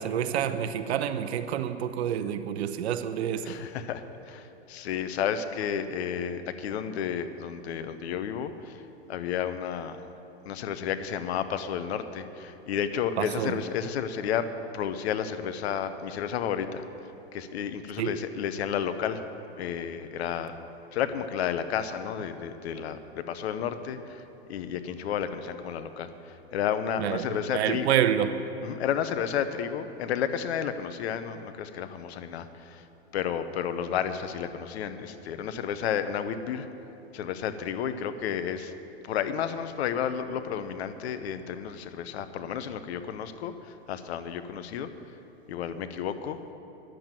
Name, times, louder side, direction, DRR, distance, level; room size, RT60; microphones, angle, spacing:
voice 1, 0.0-3.6 13.2-13.6 18.0-18.2 27.0-28.4, right 9 dB, 75° right, 10 dB, 0.8 m, -28 dB
voice 2, 3.5-4.0 4.3-4.4 4.7-8.5 9.1-10.0 10.5-14.5 14.7-16.8 17.3-19.2 19.6-20.5 20.9-24.2 24.5-26.1 26.5-27.9 28.6-32.5 33.1-36.7 37.1-38.7 39.0-43.5 43.9-44.9 45.5-46.4, left 8 dB, 70° left, 11 dB, 0.9 m, -31 dB
10.0 x 7.7 x 9.0 m, 3.0 s
hypercardioid pair, 115°, 33 cm